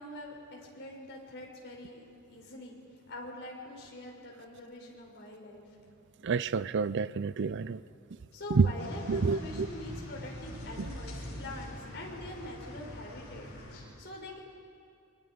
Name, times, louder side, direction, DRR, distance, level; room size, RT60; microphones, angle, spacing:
voice 1, 0.0-2.0 2.3-2.8 3.1-5.6 8.3-14.4, left 1 dB, 50° left, -1 dB, 5.1 m, -44 dB
voice 2, 6.2-7.8 8.5-8.7 9.1-9.7 10.8-10.9, right 5 dB, 55° right, 17 dB, 0.5 m, -28 dB
sound 1, 8.8-13.8, equal, 70° left, 7.8 m, -43 dB
28.0 x 25.0 x 5.2 m, 2.5 s
head